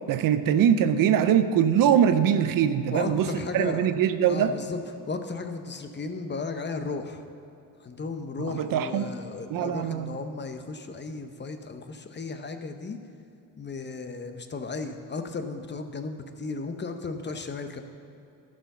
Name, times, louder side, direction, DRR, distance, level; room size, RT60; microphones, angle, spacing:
voice 1, 0.1-4.5 8.4-9.1 9.5-10.2, right 9 dB, 70° right, 11 dB, 0.6 m, -23 dB
voice 2, 2.9-3.9 4.3-4.8 5.1-7.2 7.8-13.0 13.6-17.8, left 4 dB, 30° left, 7 dB, 0.9 m, -35 dB
11.0 x 5.1 x 6.7 m, 2.7 s
cardioid pair, 75°, 34 cm